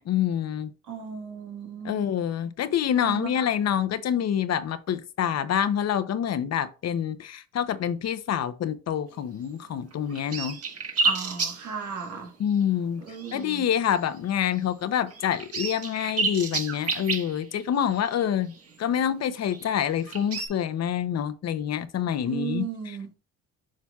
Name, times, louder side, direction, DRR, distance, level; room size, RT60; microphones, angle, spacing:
voice 1, 0.0-0.7 1.8-10.6 12.4-13.0 13.3-23.0, left 9 dB, 60° left, 0.7 m, -27 dB
voice 2, 0.9-2.0 3.0-3.3 11.0-12.3 13.1-13.6 22.3-23.1, right 7 dB, 85° right, 1.8 m, -35 dB
sound 1, 9.6-9.7 9.9-12.1 12.5-12.6 13.1-13.6 13.9-14.2 14.6-14.7 15.1-18.7 19.4-20.5, right 4 dB, 50° right, 1.6 m, -31 dB
7.3 x 5.7 x 2.3 m
cardioid pair, 90°, 30 cm